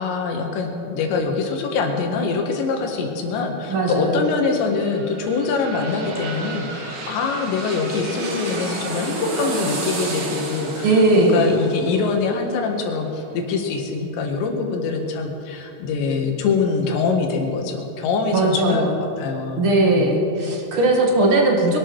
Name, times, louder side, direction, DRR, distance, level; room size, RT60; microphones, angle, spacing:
voice 1, 0.0-20.2, left 4 dB, 80° left, 2 dB, 3.9 m, -24 dB
voice 2, 3.7-4.2 10.8-11.5 18.3-19.0 19.6-21.8, right 2 dB, 50° right, 0 dB, 1.7 m, -18 dB
sound 1, 4.4-14.0 14.4-14.5, right 2 dB, 75° right, 1.0 m, -32 dB
23.0 x 11.5 x 4.7 m, 2.8 s
omnidirectional pair, 5.0 m